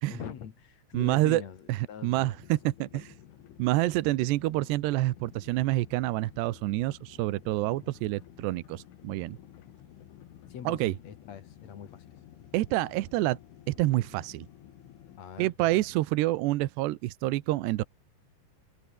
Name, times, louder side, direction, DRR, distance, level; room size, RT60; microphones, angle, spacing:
voice 1, 0.1-2.4 2.9-3.0 7.8-7.9 10.5-12.0 12.3-12.4 15.2-15.8, left 8 dB, 50° left, 2.3 m, -43 dB
voice 2, 0.9-1.4 1.7-3.0 3.6-9.4 10.7-10.9 12.5-13.4 13.7-14.5 15.4-17.8, right 17 dB, 75° right, 2.7 m, -27 dB
sound 1, 2.2-15.2, left 11 dB, 75° left, 4.6 m, -53 dB
omnidirectional pair, 5.7 m